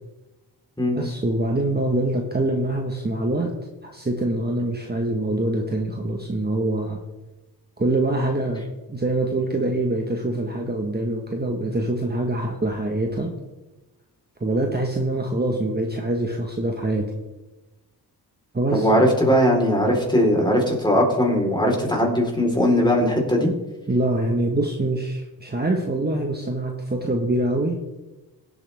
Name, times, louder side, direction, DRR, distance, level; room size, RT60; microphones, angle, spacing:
voice 1, 0.9-3.5 3.8-7.0 7.8-8.6 8.9-13.3 14.4-17.1 18.5-18.9 19.2-19.3 23.9-27.8, right 1 dB, 25° right, 2 dB, 1.5 m, -24 dB
voice 2, 18.7-23.5, equal, 10° left, 0 dB, 4.2 m, -19 dB
17.0 x 8.3 x 3.6 m, 1.1 s
cardioid pair, 65°, 41 cm